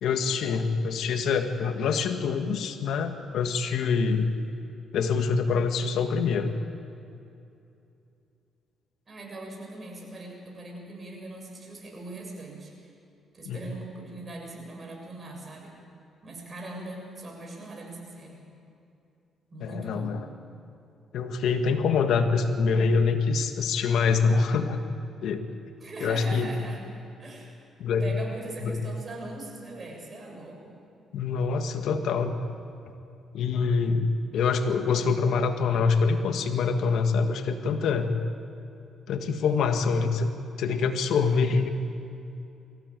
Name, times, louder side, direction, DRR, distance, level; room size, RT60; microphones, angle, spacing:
voice 1, 0.0-4.3 4.9-6.5 13.4-13.6 19.6-20.2 21.1-24.8 25.2-25.5 26.0-26.5 27.8-28.0 28.6-28.8 31.1-32.4 33.3-38.1 39.1-40.3 40.6-41.7, left 5 dB, 75° left, 7 dB, 1.6 m, -25 dB
voice 2, 9.1-12.9 13.3-15.8 16.2-18.4 19.5-20.2 25.8-26.8 27.2-27.5 28.0-30.8, right 2 dB, 35° right, 0 dB, 6.8 m, -41 dB
24.0 x 15.5 x 9.1 m, 2.7 s
cardioid pair, 90°, 0 cm